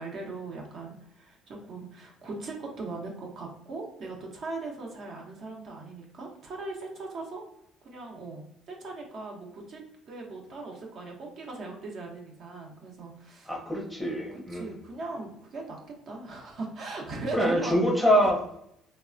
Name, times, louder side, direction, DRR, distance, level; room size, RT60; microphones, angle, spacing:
voice 1, 0.0-7.4 7.8-13.5 14.3-17.8, right 3 dB, 55° right, 0 dB, 0.7 m, -39 dB
voice 2, 13.5-14.7 17.3-18.7, equal, 5° right, -1 dB, 0.7 m, -25 dB
3.1 x 2.0 x 2.4 m, 0.76 s
supercardioid pair, 95°, 0 cm